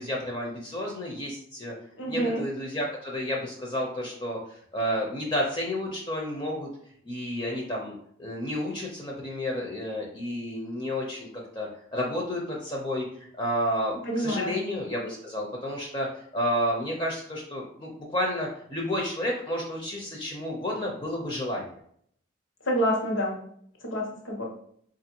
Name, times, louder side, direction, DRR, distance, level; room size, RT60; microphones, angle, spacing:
voice 1, 0.0-1.7 2.1-4.4 4.7-6.7 7.0-7.9 8.2-11.3 11.5-16.1 16.3-21.7, equal, 25° left, -1 dB, 0.6 m, -31 dB
voice 2, 2.0-2.4 14.0-14.6 22.7-23.4 23.9-24.4, equal, 75° left, 0 dB, 1.1 m, -27 dB
5.2 x 2.5 x 2.8 m, 0.65 s
head